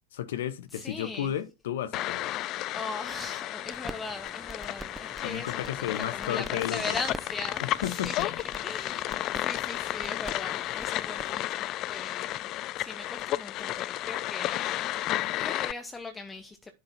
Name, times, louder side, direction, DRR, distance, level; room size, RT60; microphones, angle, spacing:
voice 1, 0.1-2.3 5.2-7.0 7.8-8.3, left 11 dB, 60° left, 0.9 m, -33 dB
voice 2, 0.7-1.3 2.7-5.7 6.1-12.5 12.8-16.7, left 3 dB, 15° left, 0.9 m, -40 dB
sound 1, 1.9-15.7, left 15 dB, 40° left, 0.3 m, -33 dB
sound 2, 3.6-11.3, right 2 dB, 10° right, 0.6 m, -46 dB
11.0 x 3.9 x 4.3 m
figure-of-eight pair, 85°, 0 cm